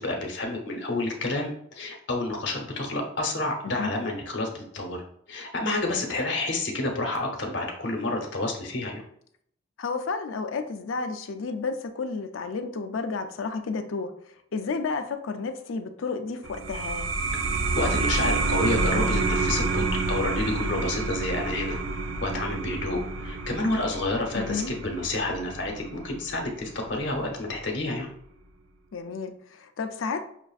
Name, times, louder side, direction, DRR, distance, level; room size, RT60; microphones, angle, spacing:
voice 1, 0.0-5.0 5.3-9.0 17.8-21.8 22.2-28.1, left 2 dB, 65° left, 1 dB, 0.9 m, -29 dB
voice 2, 9.8-17.1 24.3-24.7 28.9-30.2, left 4 dB, 85° left, 8 dB, 0.5 m, -32 dB
sound 1, 16.4-27.6, right 3 dB, 70° right, 0.4 m, -29 dB
5.9 x 2.5 x 2.4 m, 0.68 s
head